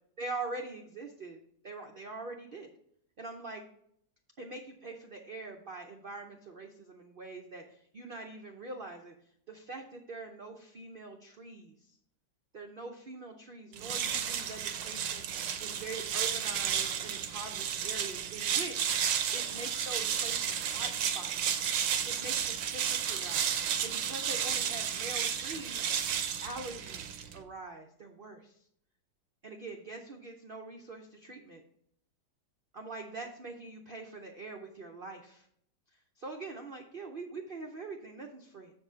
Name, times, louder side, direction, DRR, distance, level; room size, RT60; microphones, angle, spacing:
voice 1, 0.2-1.4 1.6-2.7 3.2-3.6 4.4-9.1 9.5-11.9 12.5-21.3 22.0-25.8 26.4-28.6 29.4-31.6 32.7-35.5 36.2-38.7, right 3 dB, 70° right, 3 dB, 0.5 m, -44 dB
sound 1, 13.7-27.4, right 8 dB, 90° right, 1.4 m, -32 dB
7.4 x 4.9 x 4.9 m, 0.69 s
omnidirectional pair, 1.9 m